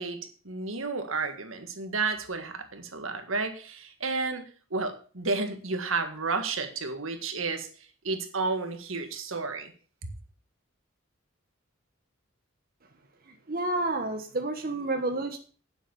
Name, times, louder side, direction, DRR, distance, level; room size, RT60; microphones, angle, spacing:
voice 1, 0.0-4.5 4.7-7.7 8.0-9.7 10.0-10.1, right 4 dB, 80° right, 7 dB, 1.8 m, -31 dB
voice 2, 13.3-15.4, right 2 dB, 45° right, 4 dB, 1.3 m, -30 dB
9.9 x 7.3 x 6.9 m, 0.40 s
head